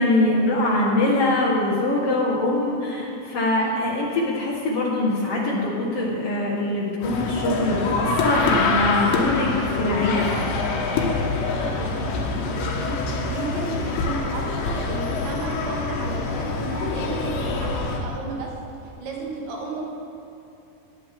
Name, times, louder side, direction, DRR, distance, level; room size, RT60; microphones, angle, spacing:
voice 1, 0.0-10.3, left 2 dB, 60° left, -3 dB, 1.6 m, -23 dB
sound 1, 7.0-18.0, left 3 dB, 80° left, 3.4 m, -25 dB
voice 2, 11.5-18.5 18.8-19.8, right 3 dB, 90° right, -1 dB, 4.1 m, -34 dB
19.0 x 10.0 x 3.7 m, 2.9 s
omnidirectional pair, 5.0 m